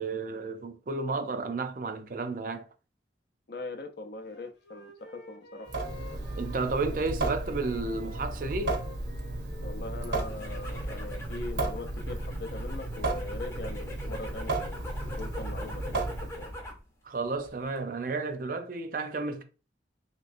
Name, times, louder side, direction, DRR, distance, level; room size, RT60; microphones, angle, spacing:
voice 1, 0.0-2.6 6.4-8.8 17.0-19.4, right 3 dB, 50° right, 0.4 m, -32 dB
voice 2, 3.5-5.7 9.6-16.5, left 2 dB, 55° left, 0.5 m, -41 dB
Wind instrument woodwind instrument, 4.3-7.2 7.4-10.9, left 3 dB, 75° left, 0.9 m, -51 dB
Water tap faucet / Sink (filling or washing) / Drip, 5.7-16.6, right 2 dB, 70° right, 0.7 m, -34 dB
sound 1, 10.1-16.9 17.2-17.8, left 1 dB, 15° left, 0.6 m, -43 dB
3.1 x 3.0 x 2.5 m
head